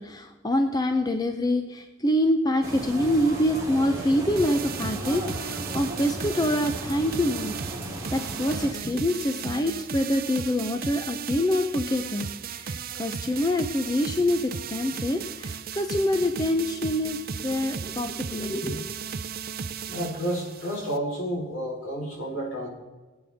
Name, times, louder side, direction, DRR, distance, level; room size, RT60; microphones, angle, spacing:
voice 1, 0.0-7.5 8.1-18.9, left 1 dB, 20° left, 6 dB, 0.6 m, -26 dB
sound 1, 2.6-8.7, right 1 dB, 15° right, 2.2 m, -35 dB
sound 2, 4.4-21.0, right 6 dB, 45° right, 0.5 m, -36 dB
voice 2, 19.9-22.7, equal, 70° left, -2 dB, 4.2 m, -30 dB
20.5 x 8.8 x 3.5 m, 1.2 s
head